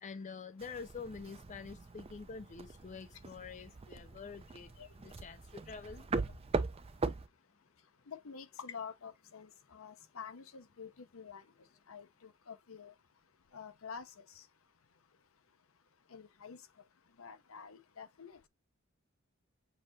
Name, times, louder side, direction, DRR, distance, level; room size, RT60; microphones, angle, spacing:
voice 1, 0.0-4.7 5.0-5.4 5.7-6.0, left 5 dB, 35° left, 0.4 m, -46 dB
sound 1, 0.6-7.3, right 3 dB, 30° right, 0.5 m, -40 dB
voice 2, 8.1-11.4 11.9-12.9 13.5-14.4 16.1-16.6 17.2-18.5, left 6 dB, 75° left, 0.7 m, -48 dB
6.6 x 2.9 x 2.7 m
head